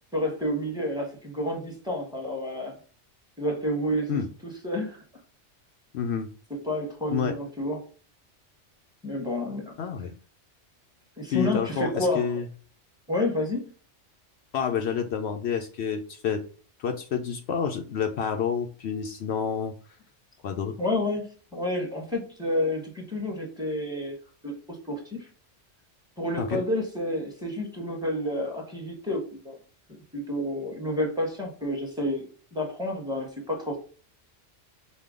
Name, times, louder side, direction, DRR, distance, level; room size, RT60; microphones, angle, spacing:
voice 1, 0.1-2.8 3.4-4.2 4.6-5.0 6.6-7.9 9.0-9.7 11.2-12.3 13.1-13.7 20.8-24.1 24.4-24.5 24.9-25.3 26.2-29.6 30.1-32.2 32.5-33.8, left 1 dB, 5° right, 0 dB, 1.2 m, -29 dB
voice 2, 5.9-6.3 7.1-7.3 9.8-10.1 11.3-12.5 14.5-16.4 16.8-19.7 20.4-20.7 26.4-26.6, left 7 dB, 70° left, 5 dB, 0.8 m, -28 dB
5.2 x 2.3 x 3.6 m, 0.39 s
omnidirectional pair, 1.2 m